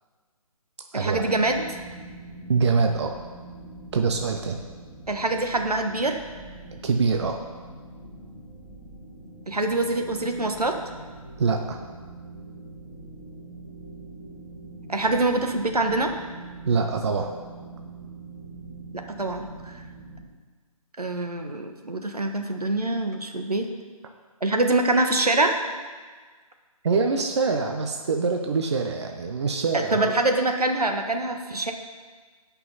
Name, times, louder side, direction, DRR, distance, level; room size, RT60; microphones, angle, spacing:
voice 1, 0.9-1.8 5.1-6.2 9.5-10.8 14.9-16.1 19.1-19.8 21.0-23.7 24.4-25.6 29.7-31.7, right 2 dB, 85° right, 4 dB, 1.3 m, -24 dB
sound 1, 1.0-20.2, right 2 dB, 15° left, 1.9 m, -43 dB
voice 2, 2.5-3.2 3.9-4.6 6.8-7.4 11.4-11.8 16.6-17.3 26.8-30.1, right 4 dB, 45° right, 4 dB, 0.9 m, -24 dB
15.5 x 5.7 x 4.1 m, 1.5 s
figure-of-eight pair, 145°, 19 cm